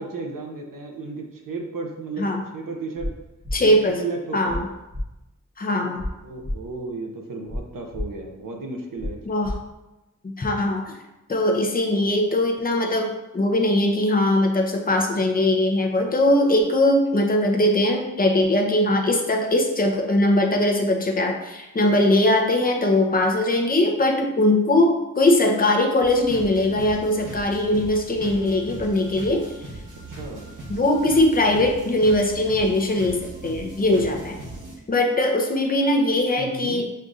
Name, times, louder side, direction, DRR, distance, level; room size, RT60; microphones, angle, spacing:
voice 1, 0.0-2.2 2.5-3.1 3.7-4.6 6.2-9.2 30.1-30.4 36.4-36.8, right 3 dB, 85° right, 2 dB, 0.7 m, -33 dB
sound 1, 3.0-3.1 3.4-3.6 4.5-4.6 4.9-5.0 6.0-6.1 6.4-6.6 7.5-7.6 7.9-8.0 9.0-9.1 9.4-9.5, left 1 dB, 5° right, 0.8 m, -29 dB
voice 2, 3.5-4.0 4.3-4.7 5.6-6.0 9.2-9.6 10.4-10.9 11.3-29.5 30.7-34.4 34.9-36.9, left 1 dB, 25° left, 2 dB, 0.6 m, -21 dB
sound 2, 26.0-34.8, right 2 dB, 65° right, 1.1 m, -39 dB
6.4 x 2.6 x 2.4 m, 0.98 s
wide cardioid pair, 95°, 33 cm